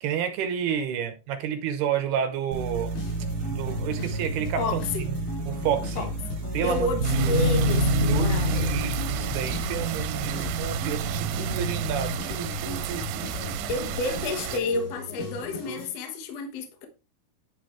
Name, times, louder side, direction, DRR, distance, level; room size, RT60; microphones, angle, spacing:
voice 1, 0.0-3.0 3.5-5.2 5.5-6.1 6.5-7.3 8.1-13.6, right 8 dB, 75° right, 2.7 m, -30 dB
sound 1, 2.5-12.1, right 1 dB, 55° right, 2.4 m, -28 dB
sound 2, 3.0-15.9, left 3 dB, 85° left, 5.7 m, -37 dB
voice 2, 4.6-5.0 6.0-6.1 6.6-8.7 13.7-16.9, left 2 dB, 65° left, 1.6 m, -30 dB
sound 3, 7.0-14.6, right 12 dB, 90° right, 2.8 m, -33 dB
10.5 x 3.9 x 4.5 m
omnidirectional pair, 5.0 m